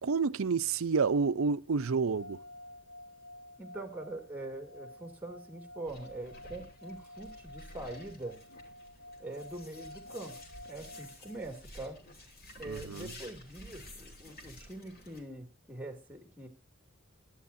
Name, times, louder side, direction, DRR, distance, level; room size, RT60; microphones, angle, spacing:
voice 1, 0.0-2.4 12.7-13.1, right 5 dB, 80° right, 0.6 m, -29 dB
sound 1, 1.8-11.9, left 1 dB, 85° left, 4.3 m, -51 dB
voice 2, 3.6-8.4 9.2-10.4 10.6-12.0 12.5-16.5, right 2 dB, 10° right, 2.6 m, -43 dB
sound 2, 5.9-15.2, left 1 dB, 50° left, 2.9 m, -52 dB
22.5 x 10.0 x 2.7 m
head